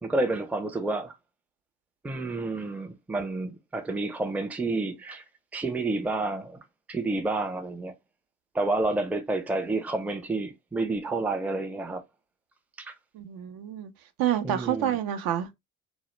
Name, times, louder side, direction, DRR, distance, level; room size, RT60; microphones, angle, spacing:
voice 1, 0.0-1.1 2.0-5.2 5.5-6.6 6.9-7.9 8.5-12.0 12.8-12.9 14.4-15.0, right 2 dB, 5° right, 0.4 m, -29 dB
voice 2, 13.1-13.9 14.2-15.5, right 10 dB, 65° right, 0.5 m, -28 dB
2.0 x 2.0 x 3.0 m
hypercardioid pair, 60°, 40 cm